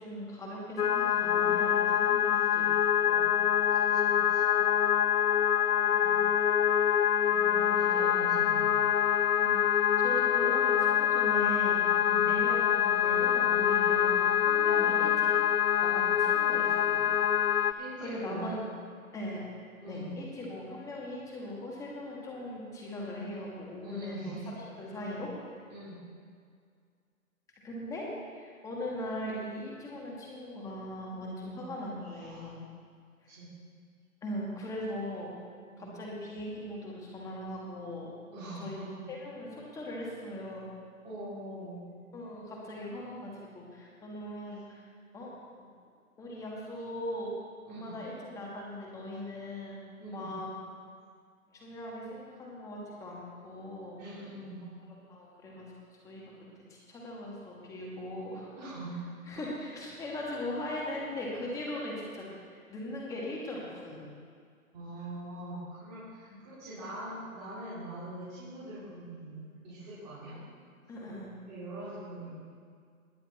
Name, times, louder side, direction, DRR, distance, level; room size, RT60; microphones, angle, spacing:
voice 1, 0.0-2.7 3.0-3.3 4.6-4.7 5.9-6.1 7.9-8.1 9.4-11.8 12.2-15.3 15.8-17.1 17.6-18.6 19.1-19.5 19.8-25.3 27.6-28.0 28.3-32.6 34.2-35.3 35.8-38.1 38.6-38.8 39.1-40.7 42.1-44.8 45.1-45.3 46.2-47.3 47.7-49.8 50.1-50.5 51.5-54.0 55.1-55.6 56.0-56.3 56.7-58.5 59.3-64.0 66.3-66.4 70.9-71.3, left 1 dB, 5° left, -3 dB, 1.5 m, -40 dB
sound 1, 0.8-17.7, left 10 dB, 85° left, 0.7 m, -25 dB
voice 2, 3.7-4.6 7.3-9.2 11.9-12.4 13.5-13.8 14.6-15.0 17.8-18.6 19.8-20.2 23.8-24.5 25.7-26.0 31.4-31.7 32.0-32.5 33.3-33.5 35.7-35.9 38.3-39.0 41.0-41.8 44.4-44.6 47.6-48.0 49.1-49.2 50.0-50.3 54.0-54.6 58.6-59.0 59.4-59.5 64.7-70.4 71.5-72.3, right 1 dB, 20° right, -13 dB, 3.9 m, -43 dB
19.5 x 7.7 x 4.2 m, 2.1 s
hypercardioid pair, 150°, 43 cm